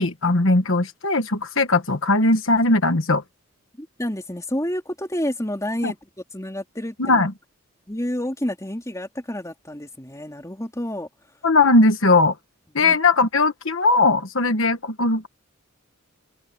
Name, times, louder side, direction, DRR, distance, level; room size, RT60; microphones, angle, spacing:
voice 1, 0.0-3.2 5.8-5.9 7.0-7.3 11.4-12.3 12.7-15.3, left 2 dB, 60° left, 1.4 m, -19 dB
voice 2, 3.8-6.0 6.3-7.2 7.9-11.1 12.8-13.0, left 1 dB, 15° left, 3.2 m, -29 dB
open air
head